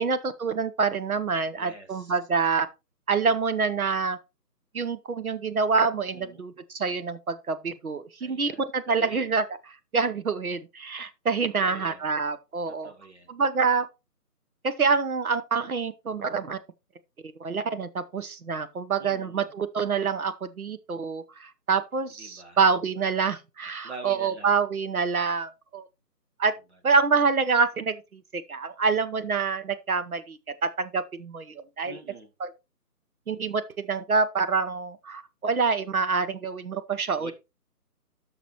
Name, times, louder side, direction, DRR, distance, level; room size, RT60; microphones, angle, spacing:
voice 1, 0.0-2.7 3.1-4.2 4.7-9.4 9.9-12.9 13.3-13.9 14.6-16.6 17.4-25.8 26.4-26.5 26.8-32.0 33.3-37.3, right 5 dB, 60° right, 1.0 m, -26 dB
voice 2, 1.5-2.1 6.1-6.6 8.2-9.3 11.6-12.1 12.7-13.4 19.0-19.5 22.1-23.0 23.8-24.6 26.7-26.8 31.8-32.3 37.2-37.3, right 2 dB, 45° right, 1.8 m, -46 dB
11.0 x 6.1 x 3.0 m
hypercardioid pair, 180°, 48 cm